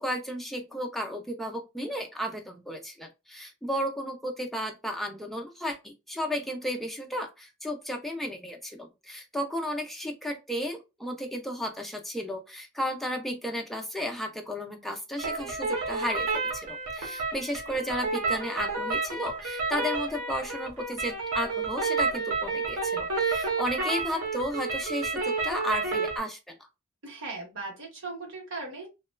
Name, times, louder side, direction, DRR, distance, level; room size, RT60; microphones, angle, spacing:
voice 1, 0.0-26.6, equal, ahead, 0.4 m, -34 dB
sound 1, 15.2-26.2, right 3 dB, 90° right, 0.9 m, -30 dB
voice 2, 27.0-28.9, right 3 dB, 60° right, 1.2 m, -38 dB
2.9 x 2.1 x 2.2 m
head